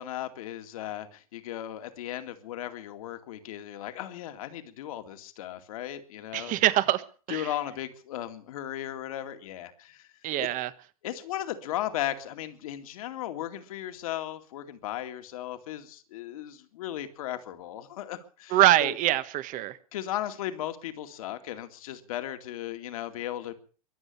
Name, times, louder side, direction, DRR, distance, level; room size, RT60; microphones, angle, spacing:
voice 1, 0.0-6.6 7.3-10.1 10.4-10.5 11.0-19.0 19.9-23.5, left 12 dB, 70° left, 2.3 m, -36 dB
voice 2, 6.3-7.0 7.3-7.5 10.2-10.7 18.5-19.8, right 14 dB, 45° right, 1.4 m, -24 dB
23.0 x 8.2 x 6.9 m
hypercardioid pair, 90°, 19 cm